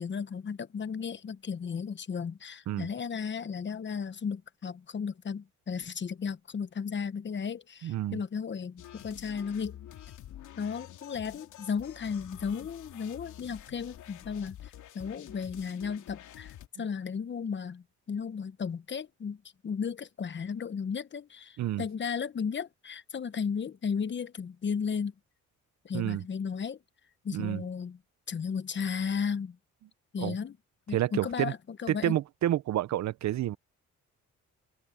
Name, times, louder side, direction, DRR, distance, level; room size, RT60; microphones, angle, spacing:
voice 1, 0.0-9.8 10.6-25.1 25.8-26.8 27.2-28.0 28.3-29.6 30.1-30.6 30.9-32.1, left 6 dB, 40° left, 1.1 m, -35 dB
voice 2, 7.8-8.2 16.8-16.9 21.6-21.8 25.9-26.2 27.3-27.6 30.2-30.4 30.9-31.5 31.9-33.6, right 13 dB, 65° right, 0.8 m, -29 dB
sound 1, 8.8-16.7, left 12 dB, 80° left, 2.8 m, -48 dB
open air
cardioid pair, 90°, 30 cm